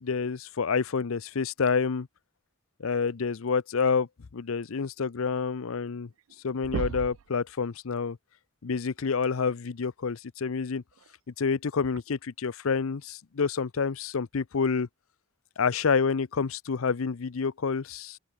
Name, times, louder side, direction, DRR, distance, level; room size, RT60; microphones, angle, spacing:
voice 1, 0.0-2.1 2.8-6.1 6.4-8.2 8.6-10.8 11.4-14.9 15.6-18.2, left 5 dB, 70° left, 0.6 m, -28 dB
sound 1, 5.7-5.8 6.1-6.3 6.6-7.3 9.0-9.1 10.9-11.1 11.9-12.0, right 7 dB, 70° right, 0.3 m, -34 dB
head